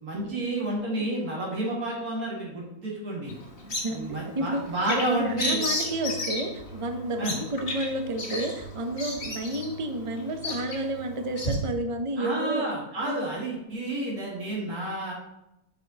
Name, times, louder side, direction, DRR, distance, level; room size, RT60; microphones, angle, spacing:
voice 1, 0.0-3.4 3.9-5.6 7.2-7.3 12.2-15.1, right 1 dB, 75° right, -4 dB, 2.5 m, -30 dB
Bird vocalization bird call bird song, 3.3-11.6, left 2 dB, 40° left, 1.5 m, -34 dB
voice 2, 3.6-12.6 13.0-13.3, right 1 dB, 35° right, 5 dB, 0.5 m, -31 dB
11.5 x 4.7 x 2.8 m, 0.87 s
omnidirectional pair, 1.6 m